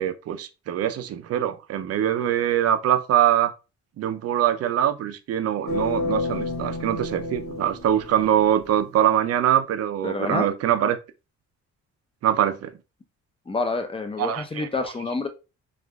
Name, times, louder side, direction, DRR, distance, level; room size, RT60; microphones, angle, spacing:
voice 1, 0.0-3.5 4.0-11.0 12.2-12.7 14.2-14.7, right 10 dB, 55° right, 0.5 m, -23 dB
sound 1, 5.7-8.7, left 2 dB, 45° left, 1.1 m, -30 dB
voice 2, 10.0-10.5 13.5-15.3, left 3 dB, 20° left, 0.5 m, -28 dB
3.2 x 2.5 x 2.2 m
cardioid pair, 90°, 30 cm